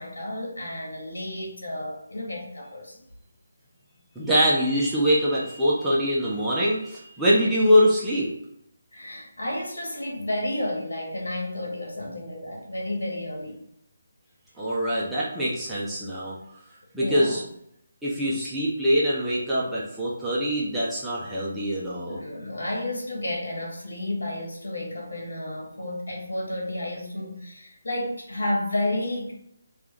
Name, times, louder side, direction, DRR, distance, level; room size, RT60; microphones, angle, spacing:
voice 1, 0.0-3.0 8.9-13.6 17.0-17.4 22.1-29.3, left 1 dB, 65° left, 0 dB, 1.3 m, -31 dB
voice 2, 4.2-8.3 14.6-16.4 16.9-17.4 18.0-22.2, equal, 5° right, -9 dB, 0.7 m, -23 dB
4.6 x 2.5 x 3.2 m, 0.74 s
figure-of-eight pair, 150°, 0 cm